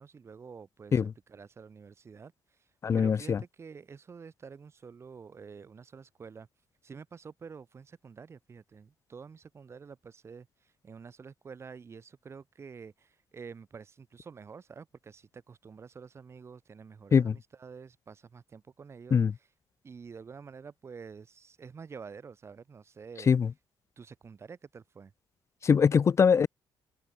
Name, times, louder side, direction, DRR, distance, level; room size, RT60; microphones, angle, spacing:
voice 1, 0.0-1.0 1.3-6.5 6.8-19.5 19.8-23.3 24.0-25.1, right 5 dB, 30° right, 7.4 m, -48 dB
voice 2, 2.8-3.4 17.1-17.3 19.1-19.3 23.3-23.5 25.6-26.5, left 6 dB, 30° left, 0.8 m, -22 dB
cardioid pair, 165°, 9 cm